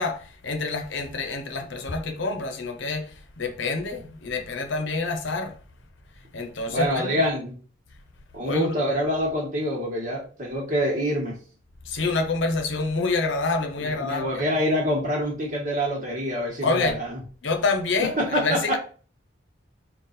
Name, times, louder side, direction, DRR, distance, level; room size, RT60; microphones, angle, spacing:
voice 1, 0.0-5.6 6.3-7.3 8.4-8.7 11.8-14.4 16.6-17.0 17.4-18.8, left 3 dB, 85° left, 0.7 m, -27 dB
voice 2, 6.7-7.5 8.3-11.4 13.8-17.2 18.0-18.8, equal, 45° right, 1.3 m, -26 dB
3.8 x 2.4 x 4.0 m
head